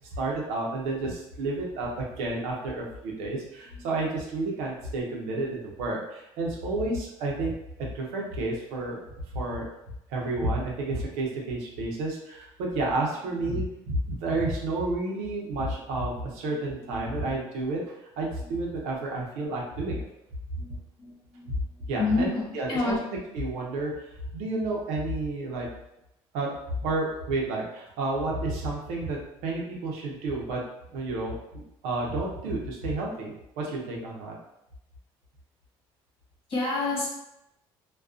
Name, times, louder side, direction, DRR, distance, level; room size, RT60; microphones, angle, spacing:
voice 1, 0.1-9.0 9.3-9.6 10.1-20.0 21.5-21.6 21.9-23.0 23.3-24.1 24.3-25.7 26.3-26.5 26.8-30.6 30.9-34.4, right 2 dB, 85° right, -2 dB, 0.7 m, -31 dB
voice 2, 16.8-17.3 20.6-21.5 22.0-23.0 36.5-37.1, left 3 dB, 50° left, -5 dB, 1.3 m, -30 dB
2.4 x 2.2 x 2.4 m, 0.84 s
supercardioid pair, 85°, 11 cm